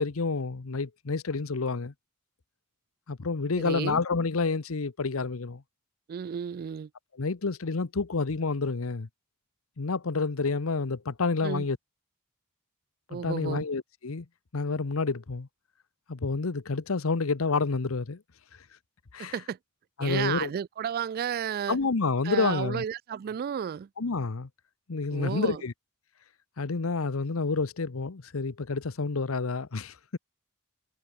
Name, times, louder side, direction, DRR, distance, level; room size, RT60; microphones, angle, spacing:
voice 1, 0.0-1.9 3.1-5.6 7.2-9.1 9.8-11.8 13.1-14.2 14.5-15.5 16.1-18.2 19.1-19.3 20.0-20.5 21.7-22.8 24.0-24.5 24.9-25.7 26.6-30.2, left 4 dB, 75° left, 0.9 m, -29 dB
voice 2, 3.6-4.0 6.1-6.9 11.4-11.7 13.1-13.7 19.2-19.6 20.0-21.8 22.2-23.9 25.1-25.6, right 8 dB, 45° right, 0.3 m, -32 dB
head